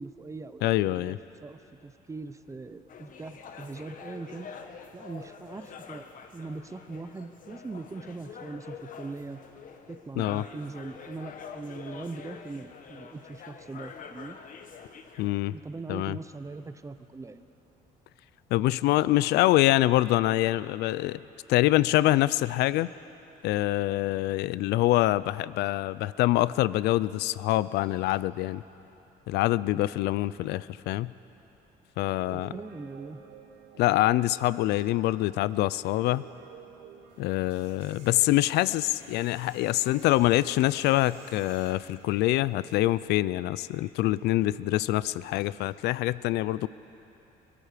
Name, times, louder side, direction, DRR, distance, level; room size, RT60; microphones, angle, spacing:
voice 1, 0.0-4.5 4.9-6.1 6.3-9.4 9.9-14.4 15.5-17.5 32.0-33.2, right 3 dB, 20° right, 11 dB, 0.8 m, -41 dB
voice 2, 0.6-1.2 10.2-10.4 15.2-15.5 15.9-16.2 18.5-21.2 21.5-22.9 23.4-28.6 29.3-31.1 32.0-32.5 33.8-36.2 37.2-46.7, left 16 dB, 80° left, 18 dB, 0.4 m, -25 dB
sound 1, 2.9-15.3, left 6 dB, 50° left, 1.4 m, -46 dB
Guitar, 32.1-39.3 39.7-43.4, right 7 dB, 75° right, 1.7 m, -53 dB
sound 2, 37.1-43.0, right 3 dB, 35° right, 4.2 m, -56 dB
23.0 x 22.5 x 5.1 m, 2.9 s
cardioid pair, 110°, 17 cm